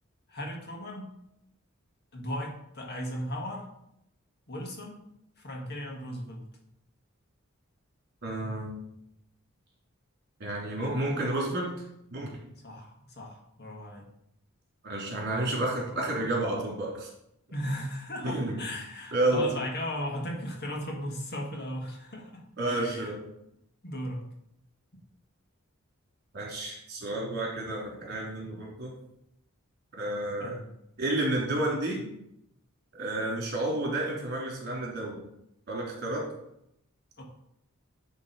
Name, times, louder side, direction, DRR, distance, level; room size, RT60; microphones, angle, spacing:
voice 1, 0.3-1.1 2.1-3.7 4.5-5.0 5.4-6.4 12.6-14.0 17.5-23.1 23.8-24.2 30.4-30.6 37.2-37.3, equal, 50° left, 0 dB, 1.8 m, -36 dB
voice 2, 8.2-8.7 10.4-11.7 12.1-12.3 14.8-17.1 18.2-18.6 19.1-19.5 22.6-23.2 26.3-28.9 29.9-30.6 31.0-32.0 32.9-35.2 35.7-36.2, right 1 dB, 50° right, -3 dB, 2.9 m, -30 dB
10.0 x 3.7 x 5.3 m, 0.79 s
head